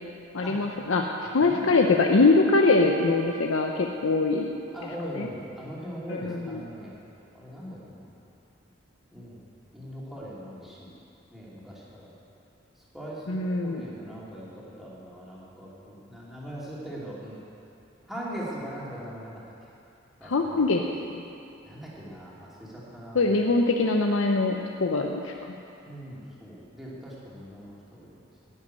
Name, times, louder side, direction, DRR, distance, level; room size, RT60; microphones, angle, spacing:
voice 1, 0.3-1.1 1.3-4.5 5.1-5.3 6.1-6.7 13.3-13.9 20.2-20.8 21.1-21.2 23.1-25.5, left 3 dB, 90° left, 2 dB, 0.7 m, -23 dB
voice 2, 1.4-1.7 4.7-6.9 7.3-8.1 9.1-9.4 9.7-10.9 11.3-12.1 12.9-13.4 13.6-17.4 18.1-19.3 20.2-20.9 21.6-23.3 25.8-28.2, equal, ahead, -7 dB, 2.7 m, -40 dB
11.0 x 8.3 x 9.2 m, 2.7 s
head